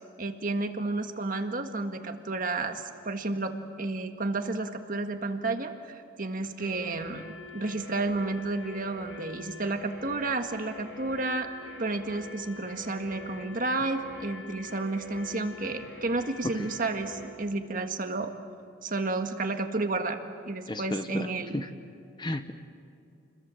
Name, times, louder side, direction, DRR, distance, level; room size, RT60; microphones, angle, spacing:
voice 1, 0.2-3.5 3.8-7.2 7.5-11.5 11.8-18.3 18.8-20.2 20.4-21.6, right 2 dB, 45° right, 6 dB, 1.7 m, -31 dB
sound 1, 6.6-17.3, left 2 dB, 70° left, 7.5 m, -45 dB
voice 2, 20.7-21.3 21.5-21.7 22.2-22.5, left 1 dB, 25° left, 9 dB, 1.0 m, -32 dB
29.5 x 21.5 x 7.7 m, 2.5 s
head